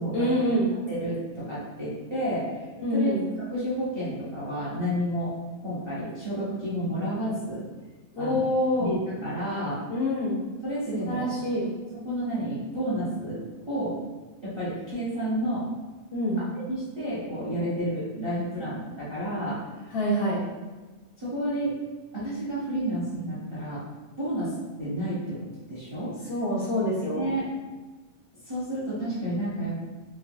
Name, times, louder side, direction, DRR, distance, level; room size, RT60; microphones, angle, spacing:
voice 1, 0.1-0.7 2.8-3.2 8.1-8.9 9.9-10.4 10.9-11.7 16.1-16.4 19.9-20.4 26.3-27.3, equal, 60° left, -5 dB, 0.6 m, -26 dB
voice 2, 0.9-2.6 2.9-5.3 5.6-7.7 8.2-8.4 8.8-9.8 10.6-11.3 11.9-14.0 14.4-15.7 16.4-20.0 21.2-21.8 22.1-23.8 24.2-26.2 27.1-27.5 28.4-29.8, right 1 dB, 30° right, -9 dB, 0.5 m, -31 dB
3.3 x 2.2 x 2.5 m, 1.3 s
omnidirectional pair, 1.5 m